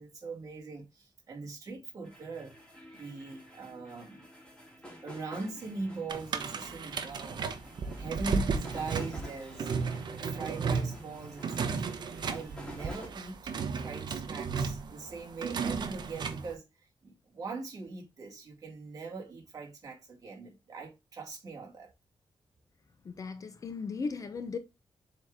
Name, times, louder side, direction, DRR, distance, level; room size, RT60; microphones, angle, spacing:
voice 1, 0.0-2.5 2.9-4.3 5.0-7.5 8.0-11.9 12.2-13.5 13.8-21.9, right 3 dB, 40° right, 2.2 m, -41 dB
sound 1, 2.0-13.1, equal, 10° left, 2.5 m, -50 dB
sound 2, 6.1-16.5, right 5 dB, 55° right, 0.9 m, -34 dB
voice 2, 23.0-24.6, left 4 dB, 40° left, 0.7 m, -37 dB
7.0 x 3.9 x 3.5 m
wide cardioid pair, 160°, 9 cm